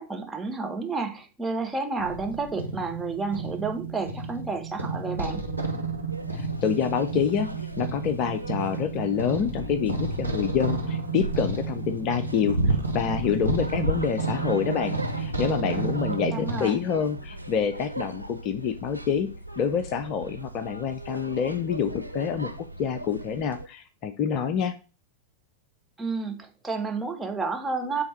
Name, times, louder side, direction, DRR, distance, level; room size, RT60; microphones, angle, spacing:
voice 1, 0.0-5.4 16.3-16.7 26.0-28.0, right 4 dB, 10° right, 3 dB, 1.1 m, -30 dB
sound 1, 2.0-16.6, right 3 dB, 90° right, 0.9 m, -30 dB
sound 2, 6.1-23.7, right 1 dB, 90° left, 0.5 m, -40 dB
voice 2, 6.3-19.3 19.6-22.5 22.8-24.8, left 7 dB, 40° left, 11 dB, 0.6 m, -27 dB
8.2 x 3.3 x 4.5 m, 0.34 s
figure-of-eight pair, 90°, 0 cm